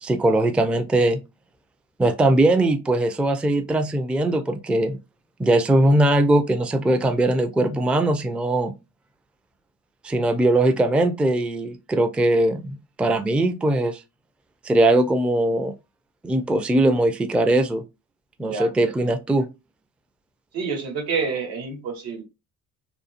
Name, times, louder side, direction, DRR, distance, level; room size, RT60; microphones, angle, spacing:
voice 1, 0.0-1.2 2.0-5.0 5.4-8.7 10.0-14.0 14.6-15.7 16.2-17.8 18.4-19.5, right 1 dB, 5° right, 0.3 m, -20 dB
voice 2, 18.4-18.7 19.0-19.1 20.5-22.2, right 5 dB, 80° right, 1.0 m, -28 dB
2.7 x 2.3 x 2.4 m
hypercardioid pair, 50°, 36 cm